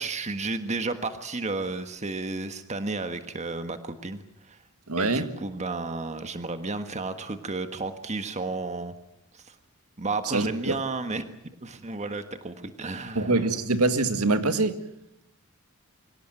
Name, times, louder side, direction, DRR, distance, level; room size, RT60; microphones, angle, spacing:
voice 1, 0.0-4.6 5.0-8.9 9.3-9.5 10.0-11.2 11.6-13.3, right 3 dB, 30° right, 1.6 m, -32 dB
voice 2, 4.9-5.3 10.3-10.8 13.2-14.8, right 3 dB, 80° right, 1.9 m, -24 dB
25.5 x 17.0 x 9.1 m
head